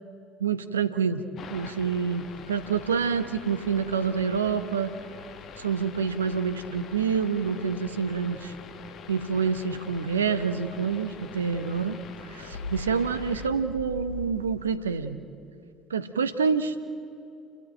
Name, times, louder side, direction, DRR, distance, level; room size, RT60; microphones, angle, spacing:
voice 1, 0.4-4.9 5.6-8.5 9.1-12.0 12.3-15.2 15.9-16.9, right 6 dB, 85° right, 10 dB, 0.8 m, -27 dB
sound 1, 1.4-13.5, left 7 dB, 45° left, 1.5 m, -45 dB
sound 2, 2.2-14.6, left 2 dB, 85° left, 5.3 m, -46 dB
29.0 x 13.0 x 9.0 m, 2.7 s
figure-of-eight pair, 60°, 0 cm